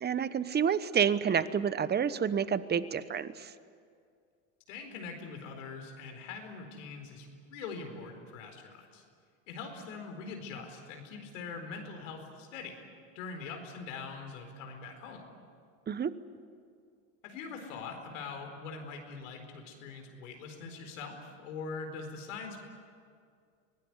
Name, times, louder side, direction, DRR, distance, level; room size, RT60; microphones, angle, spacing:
voice 1, 0.0-3.5 15.9-16.1, right 7 dB, 25° right, 15 dB, 1.1 m, -29 dB
voice 2, 4.7-9.0 9.5-12.8 13.1-15.3 17.2-22.6, left 4 dB, 85° left, 4 dB, 4.4 m, -43 dB
24.5 x 19.0 x 9.8 m, 2.2 s
supercardioid pair, 90°, 37 cm